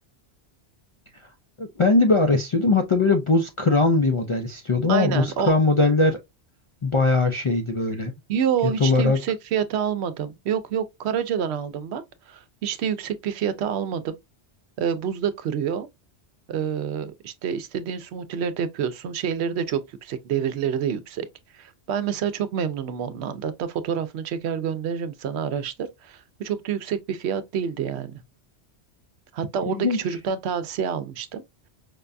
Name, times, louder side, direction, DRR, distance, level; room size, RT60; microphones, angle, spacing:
voice 1, 1.6-6.2 6.8-8.1 8.8-9.2 29.7-30.1, left 3 dB, 50° left, 0.3 m, -20 dB
voice 2, 4.9-5.6 8.3-14.1 14.8-15.9 16.5-21.3 21.5-28.2 29.3-31.4, right 8 dB, 75° right, 0.8 m, -28 dB
5.1 x 2.2 x 2.4 m
omnidirectional pair, 1.1 m